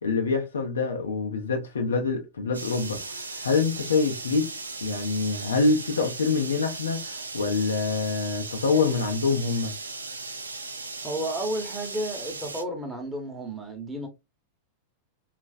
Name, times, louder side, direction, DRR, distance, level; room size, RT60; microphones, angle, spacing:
voice 1, 0.0-4.5 4.8-9.7, left 4 dB, 70° left, 0.6 m, -26 dB
sound 1, 2.5-12.6, right 3 dB, 80° right, 0.4 m, -37 dB
voice 2, 11.0-14.1, right 1 dB, 10° right, 1.0 m, -32 dB
3.0 x 2.5 x 2.3 m
figure-of-eight pair, 90°, 0 cm